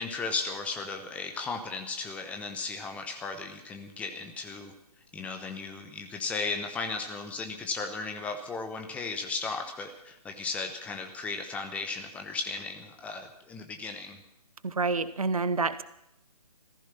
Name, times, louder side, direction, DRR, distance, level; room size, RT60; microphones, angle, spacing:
voice 1, 0.0-4.7 5.1-14.2, left 4 dB, 5° left, 5 dB, 0.9 m, -35 dB
voice 2, 14.6-15.8, right 4 dB, 65° right, 14 dB, 1.0 m, -28 dB
15.0 x 14.5 x 5.9 m, 0.82 s
figure-of-eight pair, 140°, 20 cm